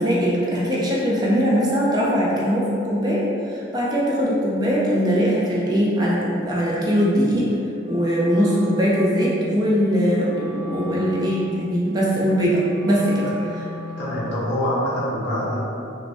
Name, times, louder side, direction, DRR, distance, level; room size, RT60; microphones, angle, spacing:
voice 1, 0.0-7.5 7.9-13.2, equal, 20° right, -5 dB, 0.4 m, -21 dB
Wind instrument woodwind instrument, 7.8-14.5, left 2 dB, 85° left, 0.9 m, -36 dB
voice 2, 14.0-15.6, equal, 60° left, -10 dB, 1.5 m, -25 dB
5.1 x 2.1 x 3.3 m, 2.7 s
head